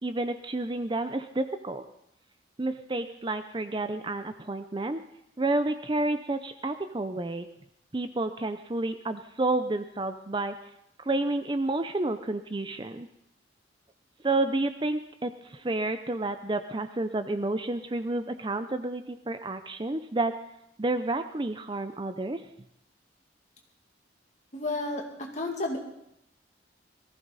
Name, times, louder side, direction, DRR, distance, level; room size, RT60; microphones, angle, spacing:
voice 1, 0.0-1.9 2.6-5.0 5.4-7.5 7.9-10.7 11.0-13.1 14.2-20.3 20.8-22.4, right 2 dB, 25° right, 10 dB, 0.5 m, -30 dB
voice 2, 24.5-25.8, left 2 dB, 40° left, 0 dB, 2.5 m, -32 dB
18.0 x 15.0 x 4.1 m, 0.79 s
head